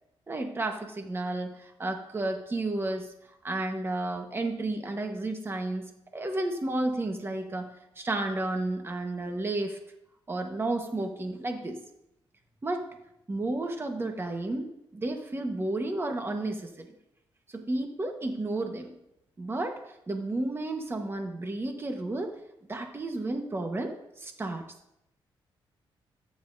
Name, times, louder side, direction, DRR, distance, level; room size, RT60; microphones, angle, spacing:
voice 1, 0.3-3.1 3.4-7.7 8.0-9.8 10.3-11.8 12.6-12.9 13.3-16.9 17.5-18.9 19.4-19.8 20.1-22.3 22.7-24.6, right 2 dB, 25° right, 4 dB, 1.3 m, -32 dB
14.0 x 9.8 x 2.7 m, 0.82 s
cardioid pair, 100°, 9 cm